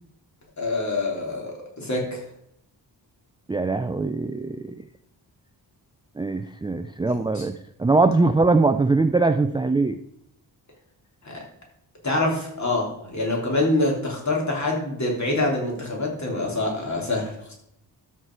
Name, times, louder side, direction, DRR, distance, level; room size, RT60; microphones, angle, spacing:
voice 1, 0.6-2.2 7.3-7.4 11.2-11.4 12.0-17.5, left 2 dB, 40° left, -1 dB, 3.3 m, -25 dB
voice 2, 3.5-4.8 6.2-7.5 7.8-10.0, right 3 dB, 10° right, 8 dB, 0.3 m, -21 dB
12.5 x 5.8 x 4.6 m, 0.74 s
wide cardioid pair, 145°, 41 cm